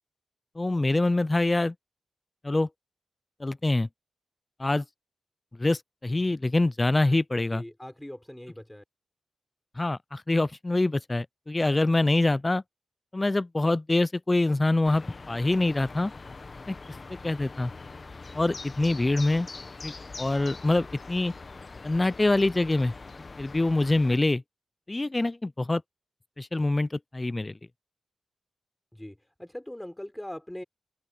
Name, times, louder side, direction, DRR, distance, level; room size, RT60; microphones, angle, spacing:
voice 1, 0.6-1.7 2.4-2.7 3.4-3.9 4.6-4.8 5.6-7.6 9.8-12.6 13.1-16.1 16.7-16.8 17.1-17.7 18.3-19.5 19.8-21.3 21.8-22.9 23.4-24.4 24.9-25.8 26.4-27.6, left 2 dB, 25° left, 0.5 m, -25 dB
voice 2, 7.5-8.8 28.9-30.6, left 1 dB, 10° left, 4.0 m, -41 dB
sound 1, 14.8-24.2, left 3 dB, 45° left, 1.3 m, -43 dB
cardioid pair, 50°, 0 cm